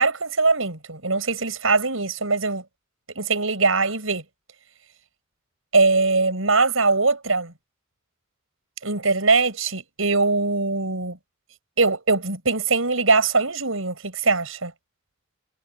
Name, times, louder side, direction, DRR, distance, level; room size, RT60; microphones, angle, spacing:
voice 1, 0.0-2.6 3.1-4.2 5.7-7.5 8.8-11.2 11.8-14.7, right 3 dB, 80° right, 6.3 m, -21 dB
head